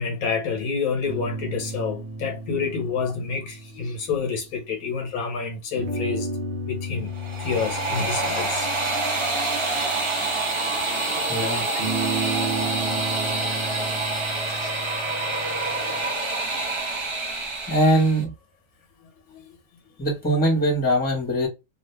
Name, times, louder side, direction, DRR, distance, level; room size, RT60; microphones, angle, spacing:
voice 1, 0.0-6.3 6.7-7.1 7.4-8.7 11.5-11.6 14.4-14.7, left 5 dB, 75° left, 1.3 m, -28 dB
sound 1, 1.0-5.0 5.7-10.8 11.8-16.0, right 2 dB, 55° right, 1.0 m, -34 dB
sound 2, 7.1-18.2, right 2 dB, 35° right, 0.5 m, -27 dB
voice 2, 11.3-11.6 17.7-18.3 20.0-21.5, right 1 dB, 5° left, 1.0 m, -21 dB
2.8 x 2.4 x 3.3 m
omnidirectional pair, 1.5 m